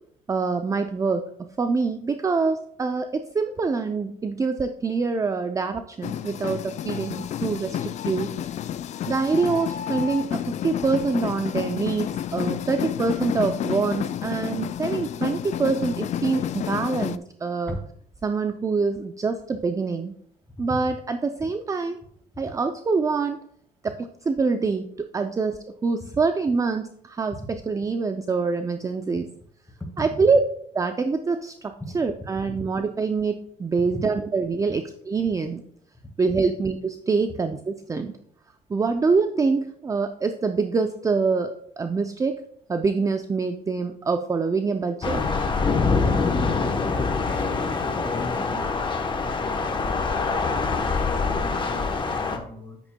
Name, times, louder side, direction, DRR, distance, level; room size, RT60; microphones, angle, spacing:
voice 1, 0.3-1.2 1.6-8.3 9.1-17.8 18.2-20.1 20.6-22.0 22.4-23.4 23.8-29.3 30.0-30.4 30.8-35.6 36.2-38.1 38.7-42.4 42.7-45.2, right 4 dB, 20° right, 8 dB, 0.4 m, -25 dB
sound 1, 6.0-17.2, left 10 dB, 45° left, 0.4 m, -30 dB
Thunder / Rain, 45.0-52.4, left 4 dB, 30° left, 1.0 m, -24 dB
voice 2, 46.2-52.8, left 1 dB, 10° left, 3 dB, 1.7 m, -38 dB
9.0 x 8.7 x 2.2 m, 0.69 s
cardioid pair, 110°, 17 cm